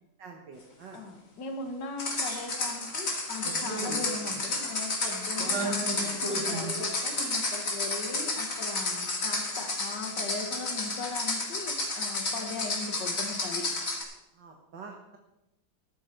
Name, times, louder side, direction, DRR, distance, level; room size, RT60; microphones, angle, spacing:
voice 1, 0.2-1.0 14.3-15.2, right 5 dB, 70° right, 2 dB, 1.9 m, -47 dB
voice 2, 0.9-13.7, left 4 dB, 65° left, 5 dB, 2.2 m, -39 dB
sound 1, 2.0-14.0, left 2 dB, 45° left, 2.7 m, -32 dB
sound 2, 2.3-2.5 2.8-2.9 3.4-4.4 4.7-5.0 5.3-6.8, right 2 dB, 40° right, 2.2 m, -36 dB
13.0 x 11.5 x 4.5 m, 0.91 s
omnidirectional pair, 2.0 m